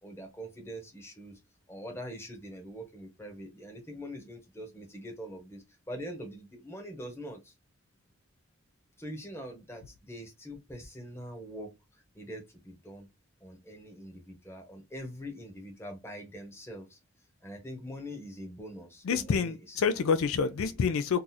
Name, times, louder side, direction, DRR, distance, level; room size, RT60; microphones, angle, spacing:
voice 1, 0.0-1.4 1.7-7.5 9.0-13.1 13.4-17.0 17.4-20.0 20.4-20.5, equal, 10° left, 0.9 m, -43 dB
voice 2, 19.0-21.2, left 6 dB, 70° left, 0.4 m, -27 dB
2.8 x 2.4 x 3.9 m
head